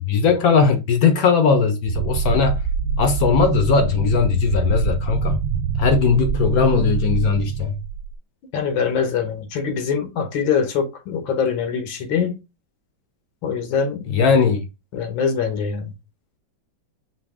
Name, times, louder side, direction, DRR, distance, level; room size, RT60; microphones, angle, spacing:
voice 1, 0.1-2.6 3.0-5.4 5.8-7.8 14.1-14.7, left 5 dB, 65° left, 0.9 m, -18 dB
sound 1, 1.9-8.1, right 6 dB, 80° right, 1.3 m, -24 dB
voice 2, 8.5-12.4 13.4-14.0 14.9-15.9, left 6 dB, 90° left, 1.7 m, -23 dB
5.1 x 2.7 x 3.5 m
omnidirectional pair, 2.1 m